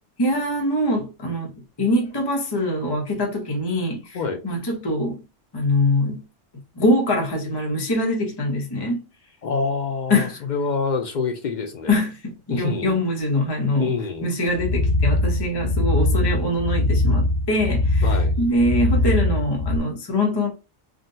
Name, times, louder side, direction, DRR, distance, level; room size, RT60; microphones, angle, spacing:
voice 1, 0.2-5.2 5.5-6.2 6.8-9.0 10.1-10.4 11.9-13.9 14.2-20.5, left 1 dB, 25° left, 0.8 m, -23 dB
voice 2, 9.4-12.0 12.5-13.0 13.8-14.3 18.0-18.3, left 4 dB, 65° left, 0.4 m, -26 dB
sound 1, 14.5-19.8, left 2 dB, 90° left, 1.0 m, -21 dB
3.6 x 2.2 x 2.6 m
omnidirectional pair, 1.3 m